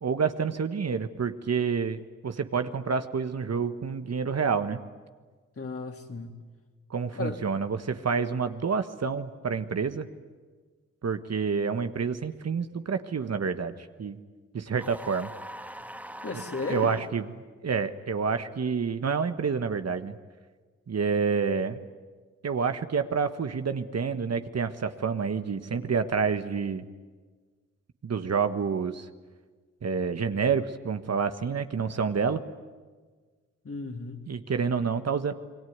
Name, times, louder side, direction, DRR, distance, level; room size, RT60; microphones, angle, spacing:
voice 1, 0.0-4.8 6.9-10.1 11.0-13.7 14.0-14.2 14.5-15.3 16.7-17.3 17.6-20.1 20.9-21.8 22.4-26.8 28.0-29.1 29.8-32.4 34.3-35.3, right 5 dB, 55° right, 9 dB, 1.5 m, -28 dB
voice 2, 5.6-6.4 7.1-7.4 16.2-16.9 33.6-34.3, left 3 dB, 45° left, 3 dB, 3.6 m, -35 dB
sound 1, 14.8-17.1, right 1 dB, 5° right, 2.3 m, -42 dB
27.5 x 21.5 x 9.6 m, 1.4 s
supercardioid pair, 50°, 32 cm